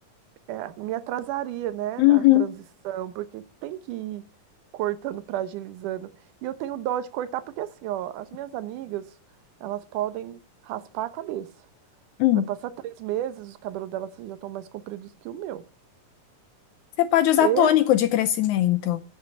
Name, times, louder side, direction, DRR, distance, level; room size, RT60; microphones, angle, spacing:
voice 1, 0.5-4.2 4.7-6.1 6.4-9.1 9.6-11.5 12.3-15.6 17.4-17.8, right 12 dB, 75° right, 2.3 m, -32 dB
voice 2, 2.0-2.4 12.2-12.5 17.0-19.0, left 14 dB, 75° left, 1.8 m, -19 dB
9.8 x 7.6 x 8.2 m
omnidirectional pair, 3.9 m